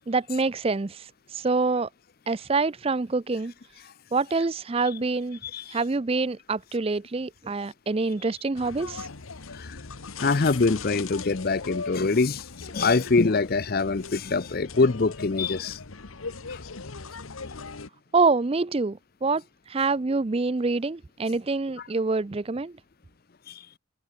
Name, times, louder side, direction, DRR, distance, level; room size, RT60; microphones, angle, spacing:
voice 1, 0.1-1.9 2.3-3.5 4.1-5.4 5.7-9.1 18.1-19.4 19.7-22.8, right 3 dB, 25° right, 0.4 m, -26 dB
voice 2, 5.4-5.8 9.5-9.8 10.2-15.8 16.5-16.6 23.5-23.7, left 3 dB, 45° left, 0.6 m, -24 dB
sound 1, 8.6-17.9, left 4 dB, 80° left, 1.3 m, -39 dB
head